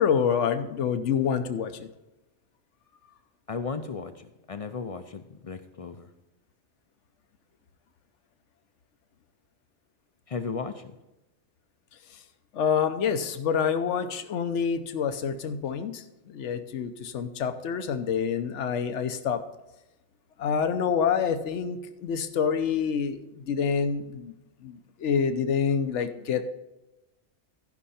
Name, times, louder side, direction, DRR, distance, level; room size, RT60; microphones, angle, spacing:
voice 1, 0.0-1.9 12.5-19.4 20.4-24.3 24.6-26.5, left 7 dB, 80° left, 10 dB, 1.1 m, -27 dB
voice 2, 3.5-6.1 10.3-10.9, left 5 dB, 50° left, 9 dB, 0.4 m, -35 dB
15.0 x 5.6 x 4.2 m, 0.96 s
omnidirectional pair, 1.2 m